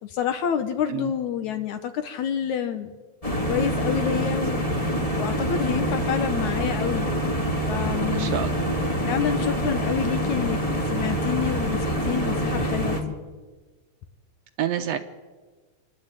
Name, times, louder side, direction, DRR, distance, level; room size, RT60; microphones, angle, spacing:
voice 1, 0.0-2.9 3.5-4.6 5.2-7.1 7.7-8.4 9.1-13.2, left 8 dB, 70° left, 9 dB, 2.1 m, -28 dB
sound 1, 3.2-13.0, equal, 15° left, 1.4 m, -26 dB
voice 2, 8.1-8.6 14.6-15.0, right 10 dB, 75° right, 8 dB, 1.6 m, -27 dB
28.0 x 11.0 x 8.9 m, 1.4 s
omnidirectional pair, 4.0 m